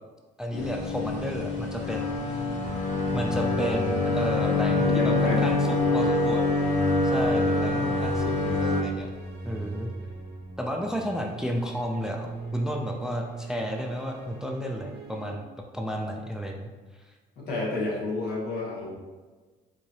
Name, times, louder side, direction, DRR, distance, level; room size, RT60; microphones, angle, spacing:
voice 1, 0.4-2.1 3.1-6.5 7.0-9.1 9.5-9.9 10.6-15.4 15.7-16.7, equal, 5° right, 2 dB, 0.3 m, -32 dB
sound 1, 0.5-8.8, left 3 dB, 45° left, 1.0 m, -25 dB
sound 2, 1.5-15.4, right 3 dB, 75° right, 1.0 m, -40 dB
voice 2, 4.8-6.0 7.5-7.8 17.4-18.9, left 2 dB, 75° left, -4 dB, 1.3 m, -31 dB
4.6 x 2.6 x 2.8 m, 1.3 s
cardioid pair, 110°, 17 cm